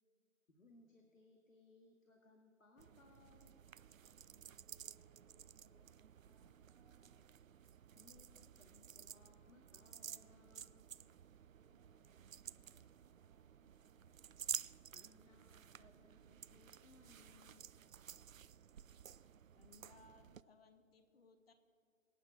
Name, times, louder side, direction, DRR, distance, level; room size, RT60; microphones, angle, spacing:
voice 1, 0.5-3.6 7.9-10.8 14.9-17.7, left 2 dB, 80° left, 2 dB, 2.1 m, -66 dB
sound 1, 2.8-20.4, right 9 dB, 80° right, 0.6 m, -53 dB
voice 2, 4.2-7.2 11.5-14.3, right 3 dB, ahead, -9 dB, 0.8 m, -74 dB
voice 3, 19.5-21.5, left 4 dB, 50° left, 9 dB, 1.4 m, -65 dB
24.0 x 9.7 x 4.8 m, 2.3 s
figure-of-eight pair, 155°, 39 cm